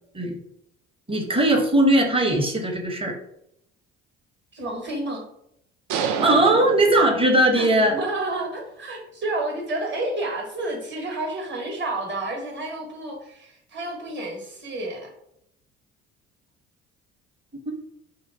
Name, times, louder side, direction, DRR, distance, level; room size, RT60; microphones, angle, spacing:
voice 1, 1.1-3.2 6.2-8.0 17.7-17.8, right 1 dB, 15° right, 2 dB, 0.8 m, -19 dB
voice 2, 4.5-5.2 7.5-15.1, right 2 dB, 30° right, 1 dB, 1.1 m, -30 dB
sound 1, 5.9-7.7, right 7 dB, 55° right, 0.4 m, -29 dB
2.8 x 2.1 x 3.6 m, 0.75 s
hypercardioid pair, 50°, 35 cm